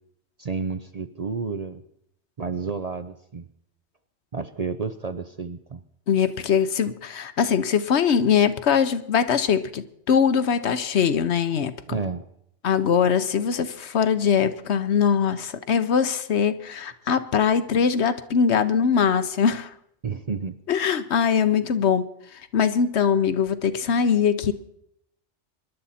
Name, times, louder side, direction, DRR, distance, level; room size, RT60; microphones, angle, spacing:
voice 1, 0.4-1.8 2.4-3.5 4.3-5.8 11.9-12.3 20.0-20.5, right 5 dB, 45° right, 9 dB, 0.6 m, -30 dB
voice 2, 6.1-11.7 12.6-19.7 20.7-22.0 22.5-24.5, left 7 dB, 65° left, 12 dB, 1.1 m, -22 dB
24.5 x 11.5 x 4.2 m, 0.75 s
omnidirectional pair, 1.2 m